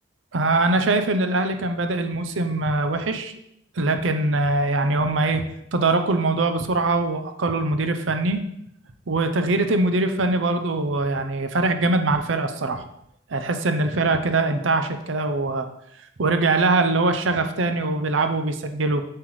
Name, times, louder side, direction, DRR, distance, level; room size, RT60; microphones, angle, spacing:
voice 1, 0.3-3.3 3.8-5.4 5.7-8.4 9.1-12.8 13.3-15.7 16.2-19.0, right 2 dB, 80° right, 7 dB, 0.7 m, -22 dB
7.7 x 7.6 x 3.2 m, 0.76 s
head